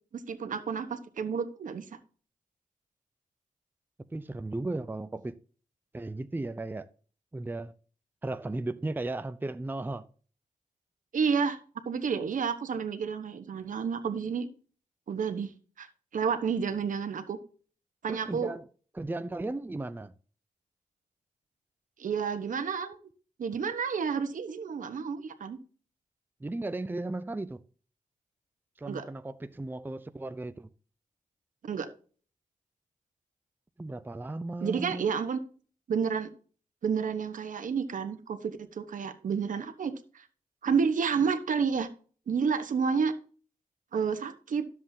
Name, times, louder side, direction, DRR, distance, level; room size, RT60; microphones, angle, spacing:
voice 1, 0.1-1.8 11.1-11.6 11.8-14.5 15.1-15.5 15.8-15.9 16.1-17.4 18.0-18.5 22.0-23.0 23.4-25.6 28.9-29.1 31.6-31.9 34.6-35.4 35.9-36.3 36.8-40.2 40.6-41.9 42.3-43.1 43.9-44.6, right 6 dB, 70° right, 1.2 m, -30 dB
voice 2, 4.1-5.4 5.9-6.9 7.3-7.7 8.2-10.0 18.1-18.6 18.9-20.1 26.4-27.6 28.8-30.7 33.8-35.1, right 2 dB, 15° right, 0.6 m, -35 dB
12.5 x 7.5 x 2.8 m
cardioid pair, 75°, 14 cm